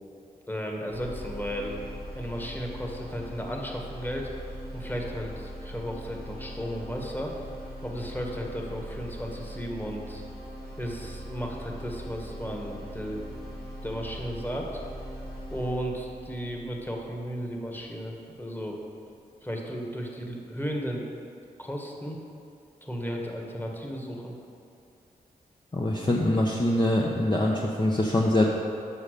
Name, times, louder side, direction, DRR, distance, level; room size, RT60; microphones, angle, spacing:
voice 1, 0.5-1.8 2.1-4.3 4.7-7.3 7.8-10.2 10.8-13.3 13.8-14.7 15.5-18.8 19.4-21.1 21.6-22.2 22.8-24.3, equal, 10° left, 0 dB, 1.6 m, -34 dB
sound 1, 0.9-18.9, equal, 75° left, 2.1 m, -41 dB
voice 2, 25.7-28.5, left 1 dB, 30° left, -2 dB, 0.9 m, -24 dB
7.0 x 5.5 x 6.6 m, 2.5 s
cardioid pair, 50°, 16 cm